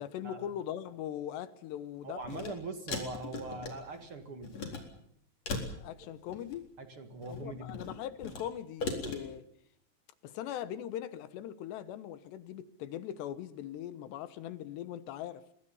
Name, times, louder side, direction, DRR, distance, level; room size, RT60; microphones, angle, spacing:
voice 1, 0.0-2.5 5.8-6.7 7.3-9.4 10.2-15.4, left 11 dB, 75° left, 3.0 m, -40 dB
voice 2, 2.0-4.6 6.8-7.8, right 3 dB, 50° right, 1.6 m, -42 dB
sound 1, 2.2-2.5 2.9-4.1 4.4-4.8 5.5-6.6 7.1-8.4 8.8-9.2, left 4 dB, 35° left, 4.8 m, -38 dB
26.0 x 22.0 x 5.5 m
omnidirectional pair, 5.3 m